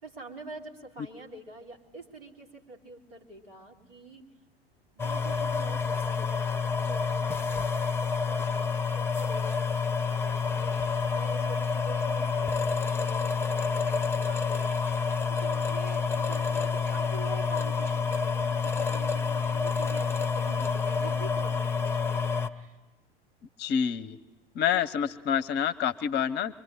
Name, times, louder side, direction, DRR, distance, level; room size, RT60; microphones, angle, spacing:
voice 1, 0.0-4.2 4.9-8.7 8.9-14.8 15.3-22.8, right 1 dB, 70° right, 1 dB, 3.3 m, -46 dB
sound 1, 5.0-22.5, left 5 dB, 10° left, 1.0 m, -28 dB
voice 2, 23.6-24.2 24.5-26.5, left 8 dB, 35° left, 13 dB, 0.8 m, -27 dB
24.5 x 22.5 x 8.9 m, 1.2 s
figure-of-eight pair, 75°, 30 cm